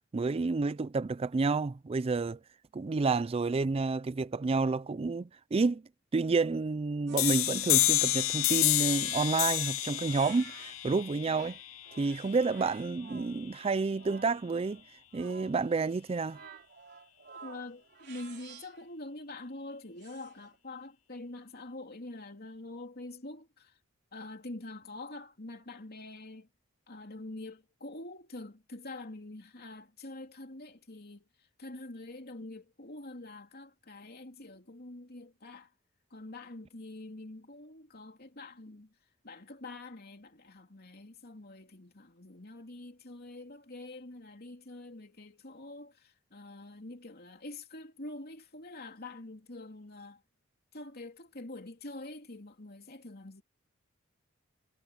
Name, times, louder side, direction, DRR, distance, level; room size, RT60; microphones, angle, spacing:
voice 1, 0.1-2.4 2.7-5.8 6.1-11.6 12.0-14.8 15.1-16.4, right 4 dB, 30° right, 0.4 m, -30 dB
sound 1, 7.1-10.9 11.2-18.9 20.0-20.6, right 6 dB, 55° right, 4.0 m, -52 dB
sound 2, 7.2-12.6, left 17 dB, 75° left, 0.6 m, -29 dB
voice 2, 17.4-23.8 24.1-26.5 26.9-35.7 36.1-38.9 39.2-50.2 50.7-53.4, left 2 dB, 50° left, 3.1 m, -45 dB
head